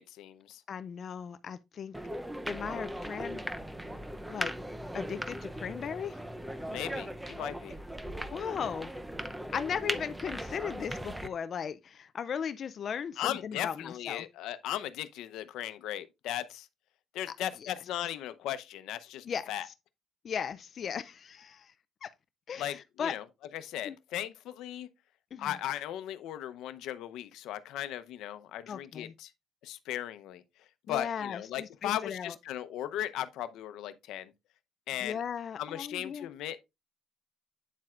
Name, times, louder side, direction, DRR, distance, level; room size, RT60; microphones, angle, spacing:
voice 1, 0.0-0.6 6.7-7.8 13.2-16.7 17.1-19.7 22.6-23.2 23.5-24.9 25.4-29.3 29.6-30.4 30.9-34.3 34.9-35.2 35.6-36.6, left 12 dB, 85° left, 0.7 m, -37 dB
voice 2, 0.7-1.9 2.5-3.4 4.3-4.5 4.9-6.2 8.3-8.9 9.5-14.2 17.3-17.4 17.6-17.7 19.2-19.7 20.2-21.7 22.0-22.1 22.5-23.1 23.8-24.0 25.3-25.5 28.7-29.1 30.9-32.3 35.0-36.3, left 7 dB, 45° left, 0.4 m, -37 dB
sound 1, 1.9-11.3, equal, 5° right, 0.6 m, -38 dB
9.1 x 7.4 x 2.5 m
cardioid pair, 135°, 0 cm